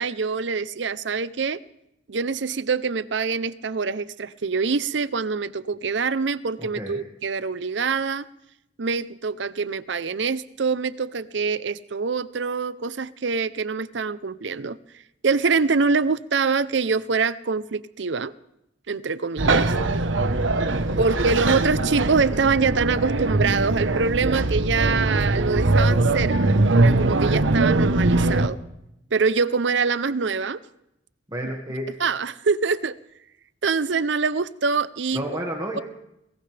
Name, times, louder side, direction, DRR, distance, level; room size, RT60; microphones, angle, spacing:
voice 1, 0.0-1.6 2.1-8.3 8.8-14.8 15.2-18.3 18.9-19.7 21.0-26.4 26.8-28.6 29.1-30.6 32.0-33.0 33.6-35.2, right 4 dB, 75° right, 16 dB, 0.6 m, -24 dB
voice 2, 6.6-7.0 20.9-21.0 31.3-31.9 35.1-35.8, equal, 20° right, -1 dB, 1.8 m, -31 dB
sound 1, 19.4-28.5, right 2 dB, 90° right, 1.1 m, -21 dB
22.0 x 18.5 x 3.4 m, 0.83 s
head